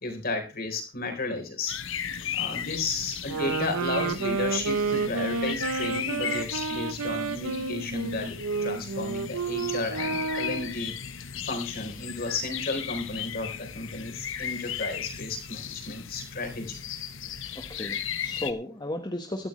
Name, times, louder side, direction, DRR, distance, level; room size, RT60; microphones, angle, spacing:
voice 1, 0.0-1.8 2.3-16.8, left 3 dB, 45° left, 4 dB, 4.0 m, -33 dB
sound 1, 1.7-18.5, left 8 dB, 60° left, 1.2 m, -36 dB
sound 2, 3.2-10.8, right 4 dB, 85° right, 0.8 m, -30 dB
voice 2, 17.5-19.5, left 1 dB, 20° left, 3 dB, 1.4 m, -34 dB
17.0 x 13.5 x 3.2 m, 0.31 s
head